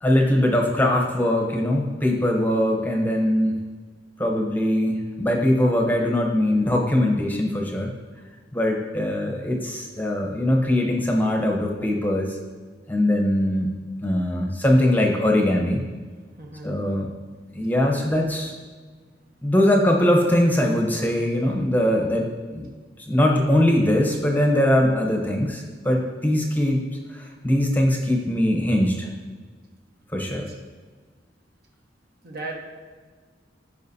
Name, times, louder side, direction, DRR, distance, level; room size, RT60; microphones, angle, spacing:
voice 1, 0.0-3.6 4.2-7.9 8.5-12.4 12.9-13.7 14.0-15.8 16.6-17.1 17.5-18.5 19.4-22.7 23.0-26.8 27.1-29.1 30.1-30.4, left 1 dB, 10° left, 0 dB, 0.9 m, -21 dB
voice 2, 16.4-16.7 30.3-30.6 32.2-32.6, right 2 dB, 55° right, 1 dB, 1.3 m, -36 dB
15.0 x 5.0 x 2.7 m, 1.4 s
head